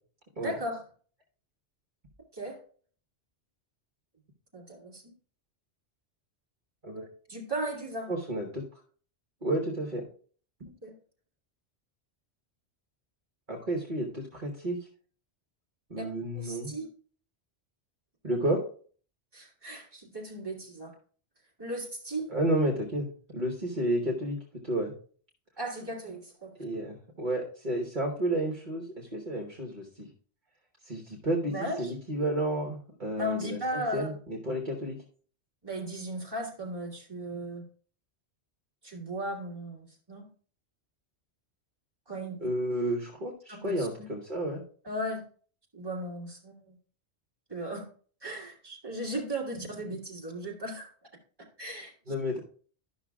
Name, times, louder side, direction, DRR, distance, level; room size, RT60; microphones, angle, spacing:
voice 1, 0.4-0.8 2.3-2.6 4.5-5.1 7.3-8.1 10.8-10.9 16.0-16.1 16.3-16.9 19.3-20.9 21.6-22.3 25.6-26.5 31.5-31.9 33.2-34.1 35.6-37.7 38.8-40.3 42.1-42.5 43.5-44.1 44.8-45.2 45.7-46.7 47.5-47.9 48.2-50.9 51.6-52.1, right 1 dB, 20° right, -2 dB, 2.2 m, -36 dB
voice 2, 8.1-8.6 9.4-10.0 13.5-14.8 15.9-16.8 18.2-18.6 22.3-24.4 24.6-24.9 26.6-30.1 30.8-35.0 42.4-44.6 52.1-52.4, right 1 dB, 45° right, -1 dB, 1.5 m, -31 dB
12.5 x 6.1 x 2.4 m, 0.43 s
omnidirectional pair, 1.1 m